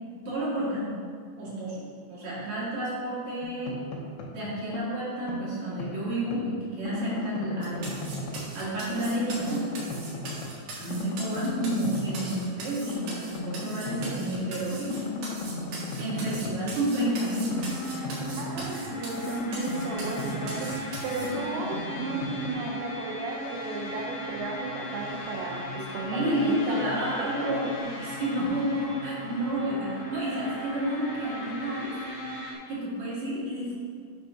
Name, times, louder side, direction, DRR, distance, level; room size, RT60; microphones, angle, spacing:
voice 1, 0.1-1.0 1.4-3.8 4.3-8.0 8.5-9.7 10.8-15.1 16.0-17.6 26.0-32.0 32.7-33.7, right 1 dB, 45° right, -9 dB, 3.0 m, -30 dB
voice 2, 2.4-2.7 18.4-20.7 21.0-27.7, right 4 dB, 90° right, 1 dB, 3.1 m, -34 dB
sound 1, 3.4-4.4 4.7-6.5 6.8-8.6 8.9-10.6 10.9-12.5 12.9-14.5 14.9-18.9 19.2-22.5, left 2 dB, 85° left, 3.2 m, -36 dB
sound 2, 7.6-21.3, right 2 dB, 65° right, 3.2 m, -41 dB
sound 3, 17.5-32.5, left 1 dB, 65° left, 2.2 m, -37 dB
9.1 x 3.7 x 5.7 m, 2.1 s
omnidirectional pair, 5.0 m